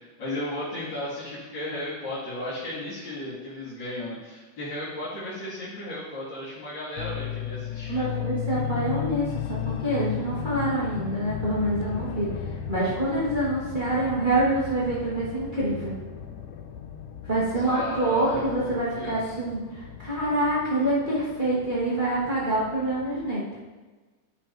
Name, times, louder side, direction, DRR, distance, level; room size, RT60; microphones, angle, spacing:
voice 1, 0.0-8.1 17.6-19.3, left 1 dB, 40° left, -13 dB, 2.5 m, -34 dB
sound 1, 7.0-23.3, left 10 dB, 80° left, 2.0 m, -36 dB
voice 2, 7.9-12.3 12.7-15.9 17.2-23.4, right 1 dB, 75° right, -9 dB, 0.4 m, -26 dB
11.5 x 5.8 x 2.7 m, 1.3 s
omnidirectional pair, 3.7 m